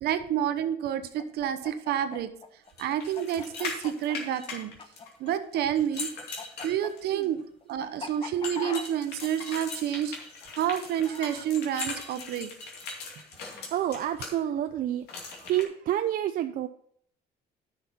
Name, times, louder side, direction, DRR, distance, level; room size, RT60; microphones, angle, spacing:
voice 1, 0.0-2.3 2.8-4.7 5.2-6.1 6.6-7.4 7.7-10.2 10.6-12.5, right 10 dB, 75° right, 10 dB, 0.9 m, -29 dB
Chicken rooster, 1.2-5.6 5.8-11.5, left 4 dB, 30° left, 1.0 m, -42 dB
sound 1, 2.8-5.3 5.8-7.2 8.4-14.3 15.1-15.6, left 4 dB, 80° left, 2.4 m, -39 dB
voice 2, 13.7-15.1 15.4-16.7, right 12 dB, 55° right, 8 dB, 0.5 m, -28 dB
10.5 x 6.1 x 4.2 m, 0.63 s
cardioid pair, 110°, 17 cm